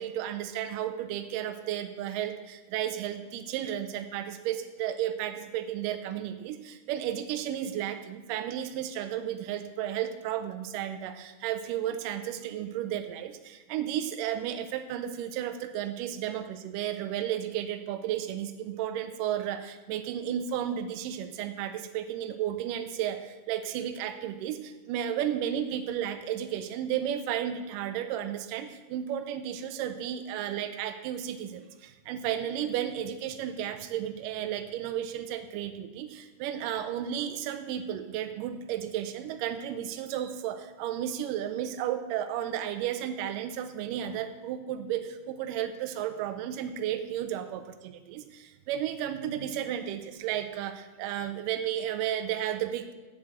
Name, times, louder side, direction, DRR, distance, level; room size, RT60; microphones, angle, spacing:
voice 1, 0.0-47.6 48.2-52.9, right 10 dB, 85° right, 8 dB, 2.2 m, -33 dB
7.7 x 7.5 x 7.4 m, 1.2 s
omnidirectional pair, 3.8 m